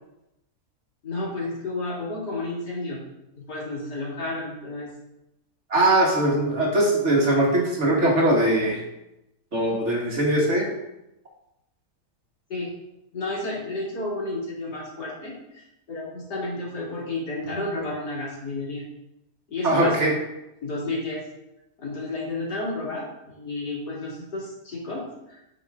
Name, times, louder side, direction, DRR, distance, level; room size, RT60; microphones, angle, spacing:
voice 1, 1.0-3.0 3.4-4.9 12.5-12.7 13.1-18.8 19.5-20.1 20.6-21.2 21.8-25.4, left 2 dB, 80° left, -5 dB, 3.1 m, -31 dB
voice 2, 5.7-8.8 9.5-10.7 19.6-20.1, right 1 dB, 45° right, -2 dB, 2.0 m, -21 dB
9.0 x 5.5 x 3.8 m, 0.88 s
omnidirectional pair, 1.7 m